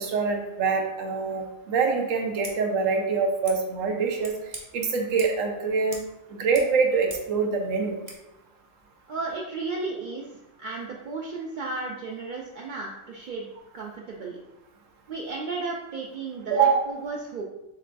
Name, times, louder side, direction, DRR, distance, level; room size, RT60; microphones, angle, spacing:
voice 1, 0.0-4.3 4.7-6.0 6.3-8.0 16.5-16.8, right 5 dB, 90° right, 2 dB, 1.1 m, -24 dB
Scissors, 2.3-2.6 3.4-3.6 4.2-4.6 5.2-5.4 5.9-6.1 6.4-7.3 8.0-8.2, right 2 dB, 30° right, 0.6 m, -42 dB
voice 2, 9.1-10.2 10.6-13.5 13.7-14.4 15.1-17.4, right 3 dB, 70° right, -2 dB, 0.4 m, -34 dB
7.0 x 2.5 x 2.2 m, 0.92 s
omnidirectional pair, 1.3 m